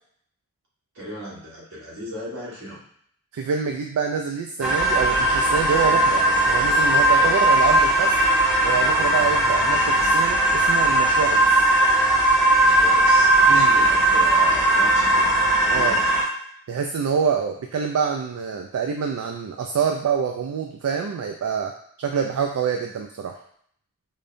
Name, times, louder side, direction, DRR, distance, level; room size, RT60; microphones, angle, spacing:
voice 1, 0.9-2.8 7.2-7.5 12.6-15.3 15.6-16.0, equal, 60° right, -7 dB, 1.4 m, -37 dB
voice 2, 3.3-8.2 8.6-11.6 13.5-13.9 15.7-16.0 16.7-23.3, right 6 dB, 75° right, 3 dB, 0.3 m, -26 dB
sound 1, 4.6-16.2, right 1 dB, 5° right, 0.6 m, -18 dB
5.1 x 2.1 x 2.6 m, 0.65 s
head